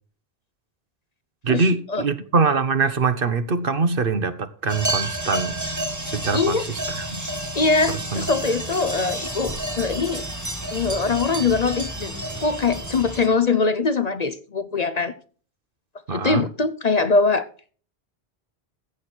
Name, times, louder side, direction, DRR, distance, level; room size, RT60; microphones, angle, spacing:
voice 1, 1.4-5.6 6.0-7.2 7.9-8.3 16.1-16.5, right 4 dB, 60° right, 1.3 m, -23 dB
sound 1, 4.7-13.3, right 1 dB, 15° right, 1.7 m, -30 dB
voice 2, 6.3-6.6 7.5-10.2 10.7-12.1 12.4-15.1 16.1-17.5, left 4 dB, 45° left, 0.8 m, -22 dB
15.5 x 8.3 x 4.4 m
omnidirectional pair, 1.0 m